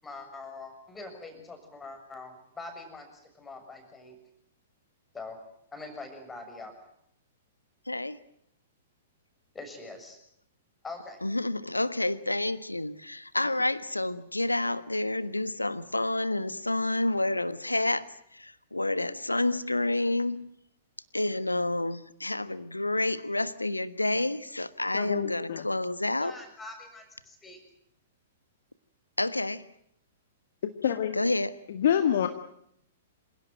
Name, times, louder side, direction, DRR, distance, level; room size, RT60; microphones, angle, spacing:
voice 1, 0.0-4.2 5.1-5.4 5.7-6.7 9.5-10.2 10.8-11.2 26.2-27.6, left 3 dB, 10° left, 6 dB, 6.7 m, -43 dB
voice 2, 7.9-8.2 11.2-20.5 21.1-26.4 29.2-29.7 31.1-31.5, left 2 dB, 85° left, 15 dB, 1.4 m, -29 dB
voice 3, 24.9-25.6 30.8-31.2 31.7-32.3, left 9 dB, 55° left, 8 dB, 1.8 m, -26 dB
27.5 x 17.0 x 9.1 m, 0.72 s
figure-of-eight pair, 110°, 0 cm